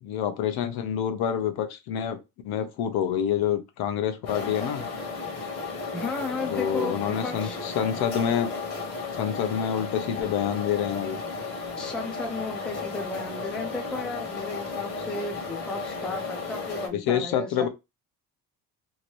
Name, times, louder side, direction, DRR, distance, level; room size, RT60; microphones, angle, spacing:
voice 1, 0.0-4.9 6.5-8.5 9.1-11.2 16.9-17.7, left 9 dB, 75° left, 0.8 m, -27 dB
sound 1, 4.3-16.9, left 4 dB, 40° left, 1.1 m, -34 dB
voice 2, 5.9-7.6 11.8-17.7, left 3 dB, ahead, 0.4 m, -34 dB
2.9 x 2.6 x 3.0 m
cardioid pair, 180°, 38 cm